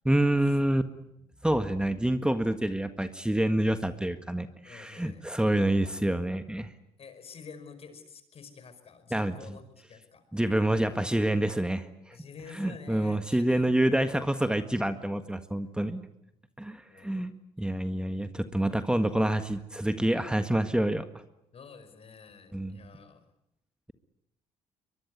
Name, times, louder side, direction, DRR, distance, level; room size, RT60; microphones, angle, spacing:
voice 1, 0.1-0.8 1.4-6.7 9.1-9.3 10.3-12.2 12.5-16.0 16.6-17.3 17.6-21.1 22.5-22.8, right 1 dB, 5° right, 9 dB, 1.7 m, -27 dB
voice 2, 4.6-5.2 7.0-10.2 12.1-13.8 15.6-15.9 16.3-16.4 16.9-17.3 21.5-23.2, left 5 dB, 50° left, 10 dB, 5.0 m, -49 dB
23.0 x 22.5 x 9.5 m, 0.79 s
supercardioid pair, 70°, 13 cm